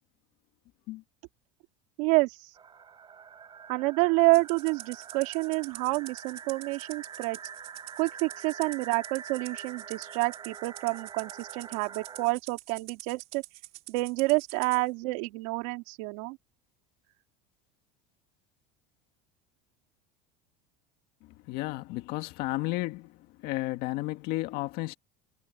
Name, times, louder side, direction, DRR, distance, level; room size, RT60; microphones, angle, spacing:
voice 1, 2.0-2.4 3.7-7.4 8.0-13.4 13.9-16.4, right 26 dB, 75° right, 2.8 m, -28 dB
sound 1, 2.6-12.3, right 7 dB, 25° right, 7.1 m, -45 dB
Rattle (instrument), 4.3-14.8, right 18 dB, 60° right, 2.6 m, -46 dB
voice 2, 21.5-24.9, left 19 dB, 60° left, 1.9 m, -33 dB
supercardioid pair, 135°, 17 cm